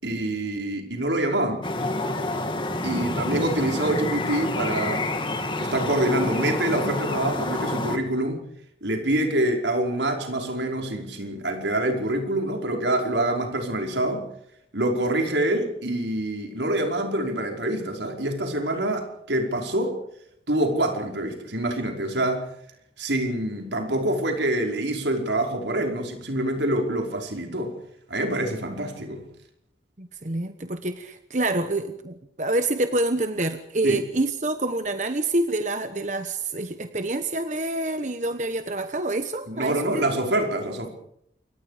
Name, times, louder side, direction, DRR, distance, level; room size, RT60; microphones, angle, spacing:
voice 1, 0.0-1.6 2.8-5.1 5.6-8.4 8.8-14.3 14.7-20.0 20.5-22.5 23.0-27.7 28.1-29.2 33.8-34.0 39.5-40.9, right 1 dB, 80° right, 3 dB, 5.2 m, -26 dB
sound 1, 1.6-8.0, left 2 dB, 25° left, 2.4 m, -28 dB
voice 2, 2.8-3.2 30.0-40.1, right 2 dB, 40° right, 8 dB, 1.2 m, -27 dB
28.5 x 24.0 x 5.1 m, 0.73 s
head